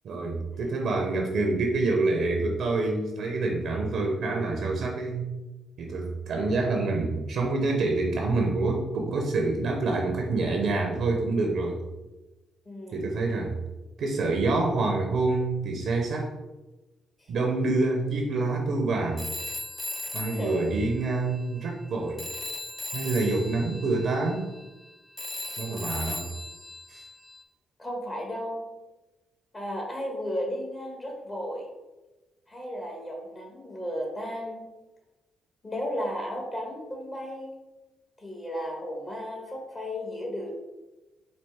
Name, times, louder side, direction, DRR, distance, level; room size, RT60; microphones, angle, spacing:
voice 1, 0.0-5.3 5.8-11.8 12.9-13.5 14.0-16.3 17.3-19.2 20.1-22.3 22.9-24.5 25.6-26.3 26.9-27.0, right 3 dB, 70° right, 1 dB, 0.5 m, -27 dB
voice 2, 12.6-13.1 17.2-17.3 20.3-20.8 27.8-28.6 29.5-31.7 32.5-34.7 35.6-37.5 38.2-40.5, equal, 35° left, 0 dB, 1.3 m, -34 dB
Telephone, 19.2-21.9 22.2-27.4, left 1 dB, 10° left, 0.4 m, -38 dB
4.3 x 2.5 x 3.4 m, 1.1 s
supercardioid pair, 55°, 0 cm